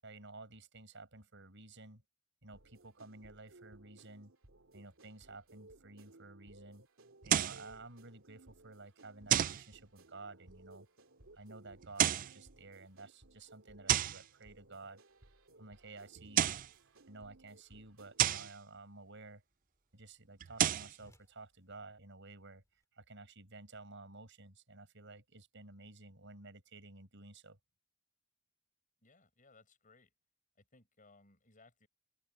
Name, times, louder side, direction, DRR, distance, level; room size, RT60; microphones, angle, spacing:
voice 1, 0.0-2.0 2.4-4.3 4.7-6.8 7.2-10.9 11.3-15.0 15.6-16.6 17.1-19.4 19.9-22.6 22.9-27.6, right 3 dB, 65° right, 7.6 m, -53 dB
sound 1, 2.5-18.5, right 2 dB, 85° right, 2.5 m, -62 dB
sound 2, 7.3-7.6 9.3-9.6 11.8-12.3 13.9-14.2 16.2-16.7 18.2-18.5 20.4-20.9, right 11 dB, 40° right, 0.3 m, -30 dB
Whoosh swoosh swish, 15.1-22.8, equal, 15° left, 5.7 m, -72 dB
voice 2, 29.0-30.1 30.5-31.9, left 3 dB, 40° left, 7.9 m, -64 dB
open air
head